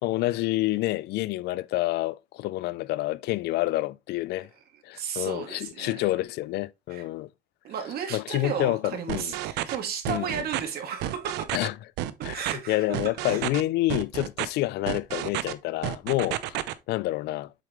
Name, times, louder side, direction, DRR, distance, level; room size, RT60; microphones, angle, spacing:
voice 1, 0.0-4.5 4.8-7.3 8.1-9.3 10.1-10.4 11.5-11.7 12.2-17.5, left 17 dB, 80° left, 0.4 m, -28 dB
voice 2, 4.9-6.0 6.9-7.0 7.6-11.4 12.3-12.9 13.2-13.4, right 8 dB, 65° right, 2.3 m, -34 dB
sound 1, 9.1-9.8 10.0-10.6 11.0-11.7 12.0-12.5 12.9-13.6 13.9-14.5 14.9-15.5 15.8-16.7, right 14 dB, 90° right, 0.7 m, -30 dB
7.6 x 4.9 x 3.1 m
cardioid pair, 110°, 17 cm